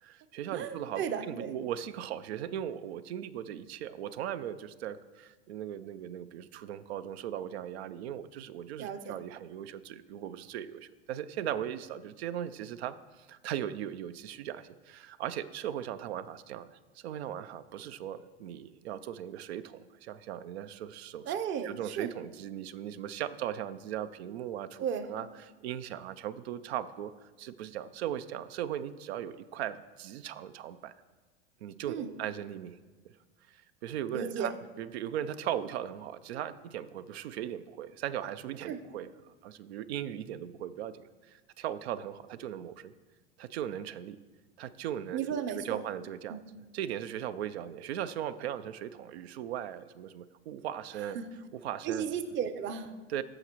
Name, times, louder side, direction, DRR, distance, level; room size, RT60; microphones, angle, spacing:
voice 1, 0.0-21.3 21.6-30.9 31.6-32.8 33.0-33.1 33.5-34.5 34.8-42.9 43.4-44.2 44.6-46.4 46.7-51.2 51.5-52.0 53.1-53.2, right 10 dB, 80° right, 13 dB, 0.5 m, -38 dB
voice 2, 0.5-1.6 8.8-9.2 21.2-22.1 24.8-25.1 31.9-32.1 34.1-34.5 38.7-38.8 45.1-45.8 46.3-46.4 51.1-51.3 51.8-52.9, right 7 dB, 35° right, 11 dB, 0.7 m, -34 dB
14.0 x 4.9 x 3.0 m, 1.3 s
hypercardioid pair, 95°, 32 cm